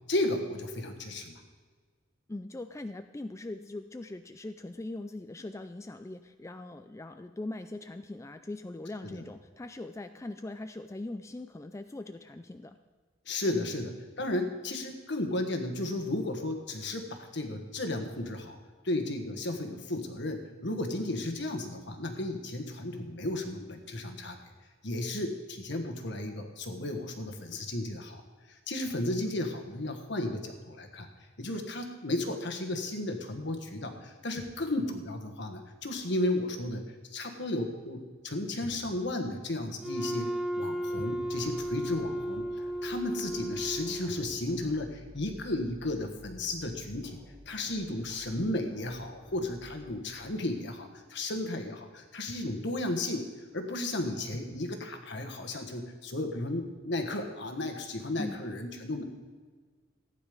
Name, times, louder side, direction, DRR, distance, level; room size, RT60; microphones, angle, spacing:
voice 1, 0.1-1.4 9.0-9.2 13.3-13.9 14.2-18.6 18.8-24.4 24.8-28.2 28.5-31.1 31.4-40.3 40.6-42.4 42.8-47.2 47.5-53.2 53.5-59.0, left 1 dB, 60° left, 5 dB, 1.5 m, -34 dB
voice 2, 2.3-12.8 13.6-13.7 58.2-58.4, left 2 dB, 15° left, 8 dB, 0.4 m, -41 dB
Wind instrument woodwind instrument, 39.8-44.5, equal, ahead, 0.8 m, -34 dB
sound 1, 41.2-50.4, left 1 dB, 25° right, 2.5 m, -54 dB
15.5 x 9.7 x 5.2 m, 1.5 s
head